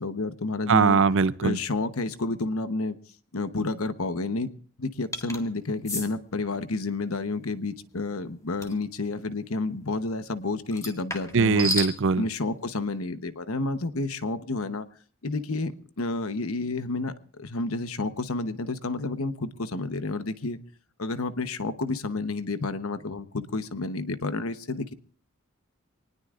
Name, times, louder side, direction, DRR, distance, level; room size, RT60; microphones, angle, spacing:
voice 1, 0.0-1.0 1.4-2.9 3.3-4.5 4.8-11.7 12.2-14.9 15.2-20.6 21.0-24.9, left 3 dB, 75° left, 11 dB, 1.0 m, -30 dB
voice 2, 0.7-1.6 11.3-12.2, right 4 dB, 60° right, 16 dB, 0.6 m, -21 dB
sound 1, 5.1-5.4 5.8-6.1 8.6-8.8 10.7-11.9, left 1 dB, 15° left, 1.9 m, -31 dB
24.5 x 19.5 x 2.5 m, 0.43 s
head